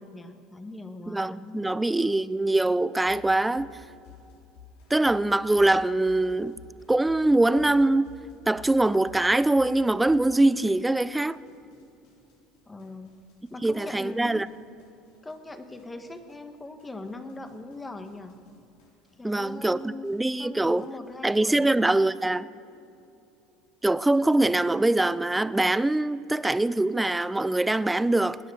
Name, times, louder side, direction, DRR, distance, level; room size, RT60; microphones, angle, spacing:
voice 1, 0.0-2.7 12.7-13.2 13.5-14.4 15.2-18.4 19.2-21.9, left 2 dB, 15° left, 1.5 m, -41 dB
voice 2, 1.1-3.7 4.9-6.5 6.9-8.1 8.5-11.4 13.6-14.5 19.2-20.9 21.2-22.5 23.8-28.4, right 2 dB, 10° right, 0.5 m, -23 dB
sound 1, 2.9-21.5, left 6 dB, 75° left, 3.7 m, -54 dB
18.5 x 10.5 x 6.5 m
supercardioid pair, 85°, 0 cm